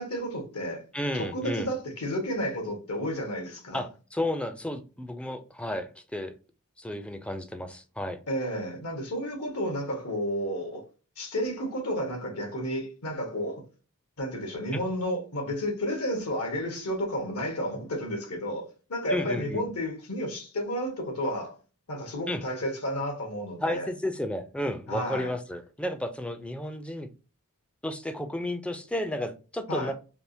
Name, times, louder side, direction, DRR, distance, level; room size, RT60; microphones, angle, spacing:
voice 1, 0.0-0.8 1.1-3.8 8.3-10.8 11.2-13.6 14.2-21.5 21.9-23.9 24.9-25.3 29.7-29.9, equal, 80° left, 1.2 m, -32 dB
voice 2, 0.9-1.7 3.7-6.3 6.8-8.2 14.7-14.8 19.1-19.6 22.3-22.4 23.6-27.1 27.8-29.9, left 1 dB, 5° left, 0.3 m, -32 dB
3.5 x 2.4 x 2.6 m
head